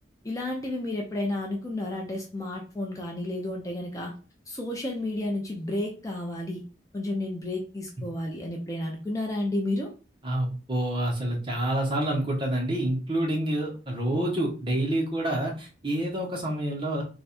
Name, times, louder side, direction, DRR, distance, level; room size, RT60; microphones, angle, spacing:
voice 1, 0.2-4.1 4.5-6.6 6.9-9.9, left 1 dB, 20° left, 0 dB, 0.6 m, -31 dB
voice 2, 10.2-17.0, right 1 dB, 25° right, -1 dB, 1.0 m, -28 dB
3.3 x 2.3 x 4.2 m, 0.35 s
head